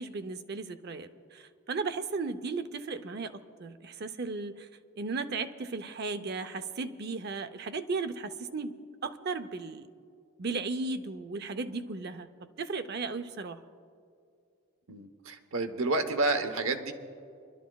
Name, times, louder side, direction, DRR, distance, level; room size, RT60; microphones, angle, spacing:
voice 1, 0.0-4.7 5.0-9.9 10.4-13.6, right 4 dB, 50° right, 10 dB, 0.6 m, -36 dB
voice 2, 14.9-16.9, right 3 dB, 75° right, 7 dB, 1.0 m, -30 dB
29.0 x 12.5 x 2.3 m, 2.4 s
head